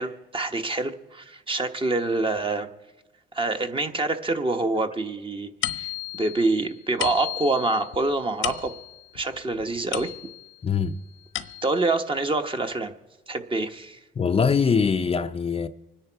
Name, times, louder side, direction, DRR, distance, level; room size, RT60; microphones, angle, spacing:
voice 1, 0.0-2.7 3.3-8.7 9.1-10.1 11.6-12.9 13.3-14.0, right 2 dB, 25° right, 1.1 m, -26 dB
sound 1, 5.6-10.6 11.1-11.9, left 13 dB, 85° left, 1.0 m, -34 dB
voice 2, 10.6-11.0 14.2-15.7, left 6 dB, 30° left, 0.5 m, -22 dB
25.0 x 10.0 x 4.6 m
cardioid pair, 90°, 20 cm